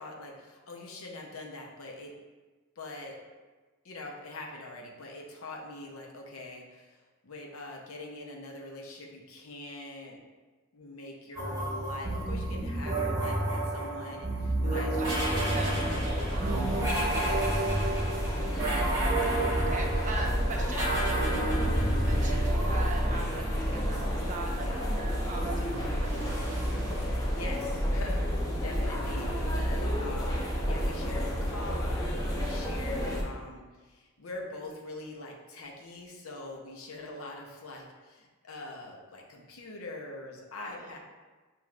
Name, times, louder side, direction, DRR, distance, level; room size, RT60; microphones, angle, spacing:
voice 1, 0.0-2.2 2.8-3.2 3.8-7.0 7.2-10.2 10.7-16.0 17.0-19.0 19.3-19.6 19.9-20.2 21.7-22.0 24.6-24.8 27.3-41.0, left 2 dB, 80° left, 0 dB, 0.7 m, -43 dB
sound 1, 11.4-23.9 25.9-27.6, right 1 dB, 15° right, 1.1 m, -31 dB
voice 2, 14.8-16.8 19.7-21.0 22.0-26.7 40.6-41.0, right 2 dB, 35° right, 0 dB, 0.6 m, -41 dB
sound 2, 15.0-33.2, equal, 15° left, 0.6 m, -30 dB
7.0 x 3.0 x 2.4 m, 1.3 s
head